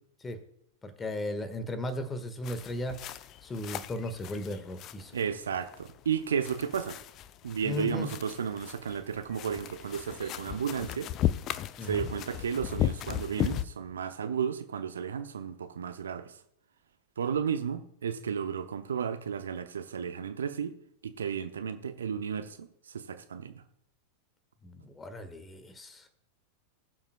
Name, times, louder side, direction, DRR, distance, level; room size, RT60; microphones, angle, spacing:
voice 1, 0.8-3.0 3.4-5.1 7.6-8.1 11.8-12.1 24.6-26.1, left 1 dB, 15° left, 10 dB, 1.5 m, -36 dB
sound 1, 2.4-13.6, left 12 dB, 35° left, 0.5 m, -36 dB
voice 2, 5.1-7.0 7.4-11.1 11.9-16.3 17.2-20.7 21.0-22.7 22.9-23.5, right 7 dB, 65° right, 10 dB, 0.7 m, -33 dB
21.0 x 7.3 x 2.3 m, 0.73 s
figure-of-eight pair, 90°, 0 cm